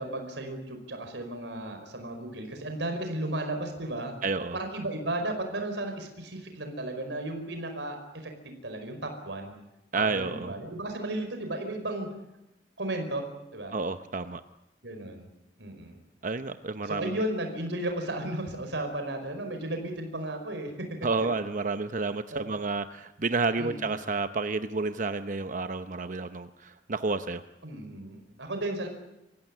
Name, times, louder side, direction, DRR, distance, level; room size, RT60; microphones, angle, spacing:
voice 1, 0.0-4.1 4.5-9.5 9.9-12.1 12.8-13.2 13.5-13.7 14.8-15.3 15.6-16.0 16.8-20.9 21.2-21.3 22.3-22.6 23.6-24.0 27.6-28.9, right 1 dB, 80° right, 5 dB, 5.1 m, -34 dB
voice 2, 4.2-4.6 9.9-10.5 13.7-14.4 16.2-17.2 21.0-27.4, right 3 dB, 45° right, 10 dB, 0.8 m, -30 dB
26.5 x 15.5 x 9.8 m, 0.93 s
head